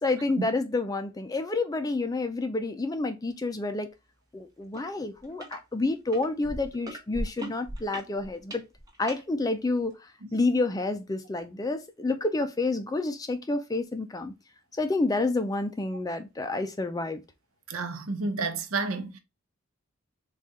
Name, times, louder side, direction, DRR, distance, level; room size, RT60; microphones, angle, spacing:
voice 1, 0.0-3.9 4.3-8.6 9.0-14.3 14.8-17.2, left 2 dB, 15° left, 0.3 m, -29 dB
sound 1, 4.7-4.9 5.2-5.6 6.1-9.2 9.9-10.0, right 1 dB, 15° right, 0.8 m, -37 dB
voice 2, 17.7-19.2, right 3 dB, 85° right, 0.7 m, -30 dB
4.1 x 2.4 x 3.5 m
head